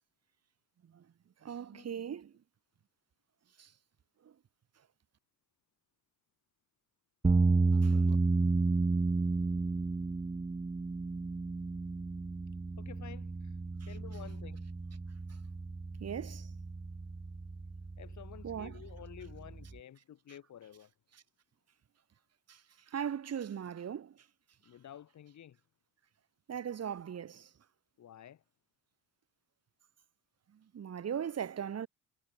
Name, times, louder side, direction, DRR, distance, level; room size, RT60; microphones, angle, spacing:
voice 1, 1.4-2.4 3.6-3.7 4.2-4.3 7.7-8.2 15.3-15.4 16.0-16.5 18.4-18.8 21.1-21.2 22.5-24.3 26.5-27.5 30.5-31.9, right 8 dB, 45° right, 4.8 m, -40 dB
sound 1, 7.2-19.7, right 3 dB, 15° right, 1.1 m, -32 dB
voice 2, 12.8-13.6 13.9-14.6 18.0-20.9 24.6-25.6 28.0-28.4, left 10 dB, 55° left, 5.7 m, -51 dB
supercardioid pair, 75°, 34 cm